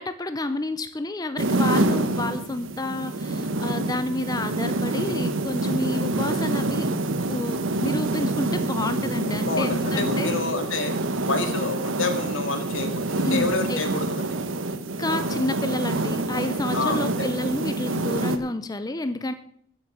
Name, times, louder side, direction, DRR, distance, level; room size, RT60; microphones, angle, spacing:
voice 1, 0.0-6.9 7.3-10.4 13.2-14.1 15.0-19.3, left 2 dB, 20° left, 11 dB, 0.5 m, -29 dB
sound 1, 1.4-18.4, right 2 dB, 80° right, 1.1 m, -26 dB
voice 2, 9.5-10.9 11.2-14.4 16.7-17.3, left 3 dB, 80° left, 6 dB, 2.1 m, -28 dB
13.5 x 7.3 x 6.8 m, 0.65 s
head